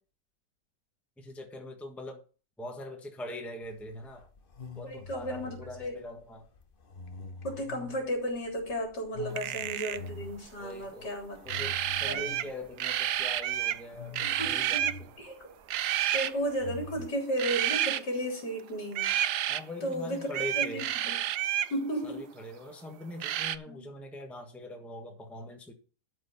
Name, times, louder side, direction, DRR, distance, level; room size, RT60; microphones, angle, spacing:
voice 1, 1.2-2.2 2.6-4.3 4.7-6.5 9.2-9.6 10.6-11.2 11.4-15.1 19.5-20.9 22.0-25.7, left 1 dB, ahead, 1.3 m, -43 dB
sound 1, 3.6-17.1, left 4 dB, 35° left, 1.1 m, -46 dB
voice 2, 4.8-6.0 7.4-11.4 12.1-12.5 14.2-15.5 16.1-19.1 19.8-21.2 21.7-22.3 23.7-23.8, equal, 70° left, 4.2 m, -34 dB
sound 2, 9.3-10.1 11.5-12.5 12.8-13.8 14.1-15.0 15.7-16.3 17.4-18.0 18.9-19.6 20.3-21.7 23.2-23.6, right 12 dB, 70° right, 1.1 m, -30 dB
13.0 x 5.0 x 5.6 m
omnidirectional pair, 1.9 m